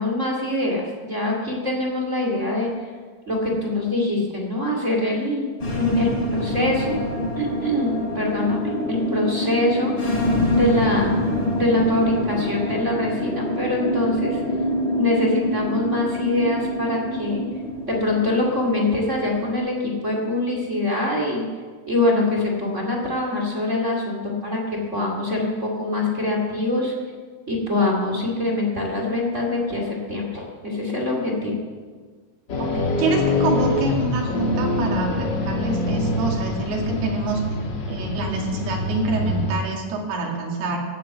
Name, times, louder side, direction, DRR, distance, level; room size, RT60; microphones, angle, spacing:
voice 1, 0.0-2.7 3.3-7.0 7.4-10.2 10.5-11.2 11.5-14.4 14.9-17.4 17.9-21.4 21.9-24.6 24.9-26.9 27.5-31.5, left 2 dB, 25° right, -1 dB, 2.0 m, -24 dB
sound 1, 5.6-19.5, left 1 dB, 30° left, 4.0 m, -26 dB
sound 2, 32.5-39.6, left 2 dB, 75° left, 1.0 m, -24 dB
voice 2, 32.6-37.4 37.9-40.8, right 3 dB, 75° right, 0 dB, 4.4 m, -26 dB
16.0 x 9.2 x 7.9 m, 1.5 s
omnidirectional pair, 4.7 m